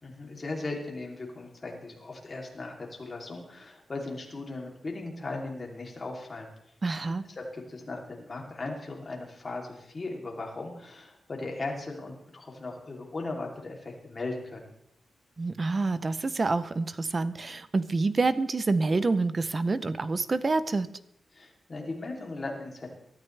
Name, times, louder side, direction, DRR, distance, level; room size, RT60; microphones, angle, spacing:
voice 1, 0.0-6.5 7.4-14.7 21.3-22.9, left 2 dB, 30° left, 0 dB, 3.0 m, -38 dB
voice 2, 6.8-7.3 15.4-20.9, right 3 dB, 30° right, 14 dB, 0.6 m, -27 dB
23.0 x 13.0 x 3.3 m, 0.76 s
wide cardioid pair, 155°, 0 cm